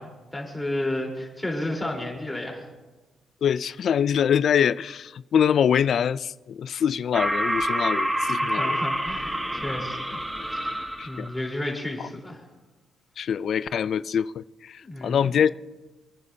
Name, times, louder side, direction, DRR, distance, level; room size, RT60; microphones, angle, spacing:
voice 1, 0.0-2.7 8.4-10.2 10.6-10.7 11.0-12.4 14.8-15.3, left 1 dB, 10° left, 3.9 m, -32 dB
voice 2, 3.4-8.8 11.0-11.3 13.2-15.5, left 8 dB, 60° left, 0.3 m, -24 dB
sound 1, 7.1-11.3, right 1 dB, 10° right, 1.4 m, -27 dB
28.5 x 9.7 x 2.8 m
cardioid pair, 90°, 0 cm